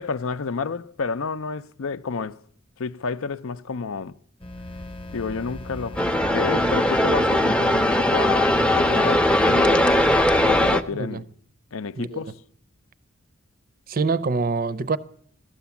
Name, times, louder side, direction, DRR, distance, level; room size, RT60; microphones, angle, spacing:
voice 1, 0.0-2.4 2.8-4.1 5.1-9.9 10.4-11.2 11.7-12.3, left 5 dB, 70° left, 0.5 m, -30 dB
sound 1, 4.4-10.1, left 1 dB, 25° left, 0.9 m, -38 dB
sound 2, 6.0-10.8, left 1 dB, 5° left, 0.5 m, -19 dB
voice 2, 10.9-11.2 12.0-12.3 13.9-15.0, right 4 dB, 40° right, 0.6 m, -25 dB
16.0 x 12.5 x 7.1 m
head